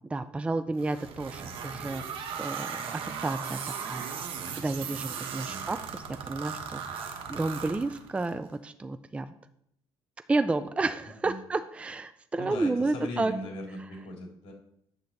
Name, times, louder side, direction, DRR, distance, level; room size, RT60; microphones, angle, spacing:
voice 1, 0.1-2.0 2.3-4.1 4.6-9.3 10.3-13.3, right 3 dB, 15° right, 10 dB, 0.4 m, -31 dB
sound 1, 0.8-8.3, right 6 dB, 65° right, 1.3 m, -37 dB
voice 2, 12.4-14.5, left 1 dB, 80° left, 0 dB, 3.0 m, -39 dB
9.5 x 3.9 x 7.1 m, 0.72 s
cardioid pair, 130°, 9 cm